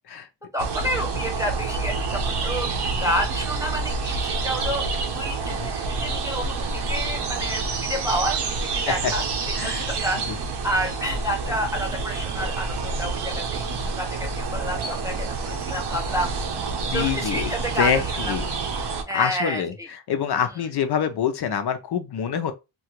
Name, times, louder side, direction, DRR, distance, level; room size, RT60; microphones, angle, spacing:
voice 1, 0.5-2.7 3.0-13.7 14.0-16.3 16.9-18.3 19.1-19.9, equal, 10° right, 0.5 m, -29 dB
sound 1, 0.6-19.0, right 4 dB, 60° right, 0.7 m, -28 dB
voice 2, 9.5-9.9 10.3-10.4 16.9-17.5 17.8-18.4 18.8-22.5, left 8 dB, 60° left, 0.5 m, -26 dB
2.8 x 2.4 x 2.8 m
wide cardioid pair, 160°, 46 cm